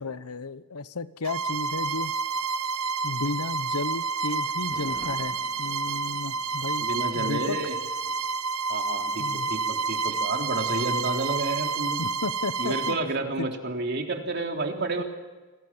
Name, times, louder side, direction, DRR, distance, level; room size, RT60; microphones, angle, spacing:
voice 1, 0.0-2.2 3.0-6.9 7.1-7.6 9.2-9.5 12.0-13.0 13.4-13.5 15.0-15.1, left 3 dB, 90° left, 15 dB, 1.0 m, -33 dB
Bowed string instrument, 1.2-13.1, right 4 dB, 85° right, 1.2 m, -29 dB
Thunder, 4.5-8.5 8.7-8.8, left 1 dB, 35° left, 4.6 m, -49 dB
voice 2, 6.8-7.8 8.7-12.0 12.6-15.0, right 2 dB, 50° right, 3 dB, 3.4 m, -30 dB
29.5 x 21.5 x 7.3 m, 1.3 s
head